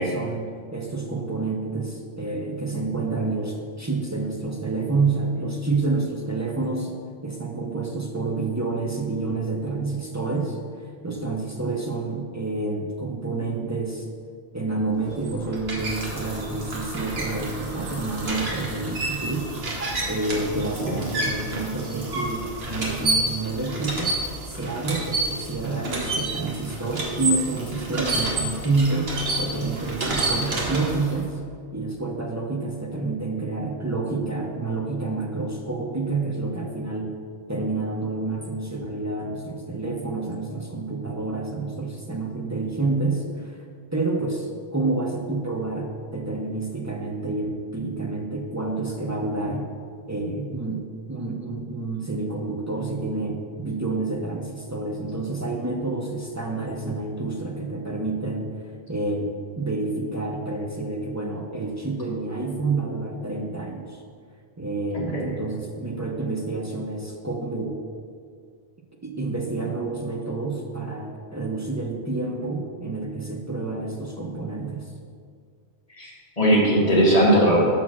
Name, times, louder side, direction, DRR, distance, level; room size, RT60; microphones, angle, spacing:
voice 1, 0.0-7.0 7.2-10.6 11.0-14.1 14.5-19.5 20.0-24.2 24.5-31.4 31.7-37.2 37.5-43.6 43.9-49.7 50.1-58.6 58.9-64.0 64.6-67.8 69.0-74.9, right 3 dB, 25° right, 0 dB, 0.4 m, -28 dB
sound 1, 15.0-31.2, right 2 dB, 65° right, 1.4 m, -29 dB
voice 2, 64.9-65.2 76.0-76.1 76.4-77.6, right 1 dB, 35° left, -6 dB, 1.7 m, -19 dB
5.9 x 4.5 x 5.9 m, 2.1 s
omnidirectional pair, 1.1 m